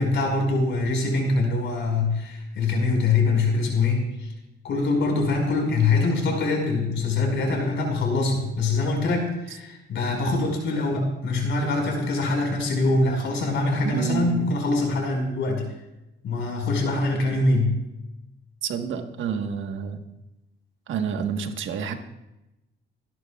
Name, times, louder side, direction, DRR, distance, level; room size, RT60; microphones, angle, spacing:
voice 1, 0.0-4.3 4.6-15.7 16.2-17.8, left 3 dB, 70° left, 1 dB, 5.0 m, -24 dB
voice 2, 13.8-14.3 18.6-20.0 20.9-21.9, right 7 dB, 75° right, 5 dB, 1.4 m, -28 dB
27.5 x 10.5 x 2.4 m, 0.94 s
cardioid pair, 90°, 20 cm